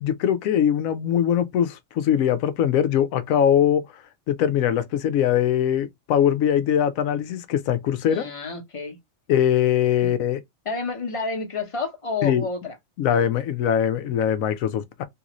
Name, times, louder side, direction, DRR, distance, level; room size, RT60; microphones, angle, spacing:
voice 1, 0.0-3.8 4.3-8.3 9.3-10.4 12.2-12.5 13.0-15.0, left 9 dB, 80° left, 1.0 m, -22 dB
voice 2, 8.1-9.0 10.0-10.1 10.6-12.8, left 4 dB, 30° left, 0.8 m, -30 dB
3.3 x 2.5 x 2.9 m
omnidirectional pair, 1.4 m